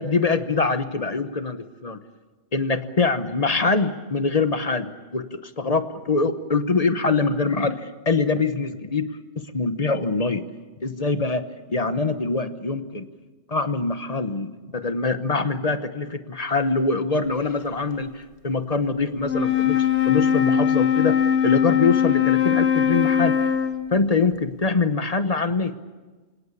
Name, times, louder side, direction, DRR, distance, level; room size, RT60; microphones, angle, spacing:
voice 1, 0.0-2.0 2.5-9.1 9.4-10.4 10.8-13.1 13.5-23.5 23.9-25.8, left 3 dB, 35° left, 10 dB, 1.1 m, -24 dB
Wind instrument woodwind instrument, 19.2-24.0, left 9 dB, 70° left, 1.3 m, -21 dB
27.5 x 17.5 x 8.5 m, 1.3 s
omnidirectional pair, 1.2 m